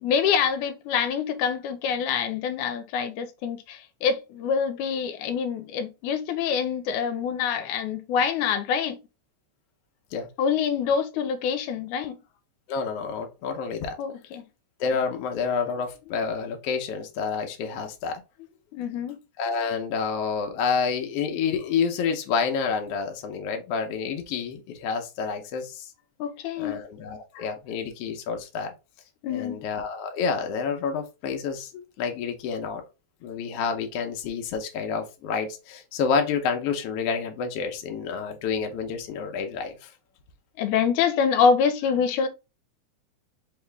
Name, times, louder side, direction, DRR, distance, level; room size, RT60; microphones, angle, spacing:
voice 1, 0.0-9.0 10.4-12.2 14.0-14.4 18.7-19.2 26.2-26.8 27.4-27.5 29.2-29.7 40.6-42.3, left 6 dB, 90° left, 2.0 m, -26 dB
voice 2, 12.7-13.9 14.8-18.2 19.4-25.9 26.6-28.7 29.3-32.8 33.2-39.9, left 5 dB, 70° left, 1.6 m, -29 dB
4.8 x 3.0 x 3.3 m
omnidirectional pair, 3.5 m